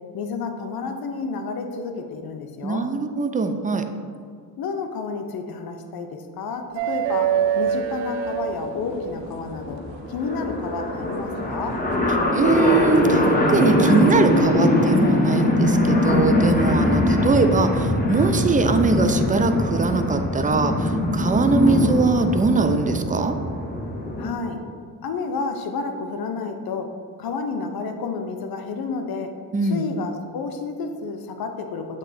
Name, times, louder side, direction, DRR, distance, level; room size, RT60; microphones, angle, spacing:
voice 1, 0.1-2.9 4.6-9.8 10.1-11.8 17.0-17.4 24.2-24.6 25.0-26.9 27.2-29.3 29.6-32.0, left 4 dB, 55° left, 5 dB, 0.8 m, -30 dB
voice 2, 2.6-3.8 12.3-23.4 29.5-29.9, right 4 dB, 20° right, 7 dB, 0.5 m, -21 dB
sound 1, 6.8-9.2 10.8-10.9 12.7-12.9, right 8 dB, 80° right, 0.5 m, -24 dB
sound 2, 7.8-7.9 8.2-8.3 8.4-24.3, left 1 dB, 20° left, 1.2 m, -22 dB
7.8 x 3.1 x 4.2 m, 2.1 s
supercardioid pair, 60°, 43 cm